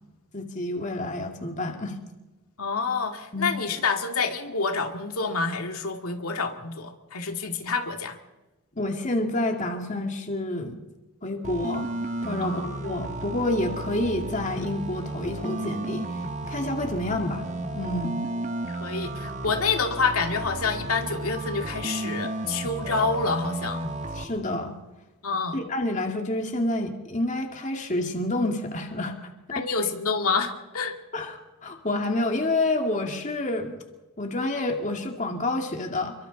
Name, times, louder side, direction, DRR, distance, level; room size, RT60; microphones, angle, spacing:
voice 1, 0.3-2.0 3.3-3.5 8.8-10.8 11.2-11.9 12.2-16.1 16.5-17.4 17.7-18.3 24.1-24.8 25.5-29.1 29.6-29.7 31.1-33.8 34.2-36.1, left 2 dB, 35° left, 3 dB, 2.3 m, -28 dB
voice 2, 2.6-8.2 12.4-12.8 17.1-17.2 18.7-23.8 25.2-25.5 29.5-31.0, left 4 dB, 85° left, 4 dB, 2.4 m, -28 dB
sound 1, 11.4-24.2, right 2 dB, 35° right, 1.4 m, -33 dB
29.0 x 23.5 x 4.1 m, 1.1 s
head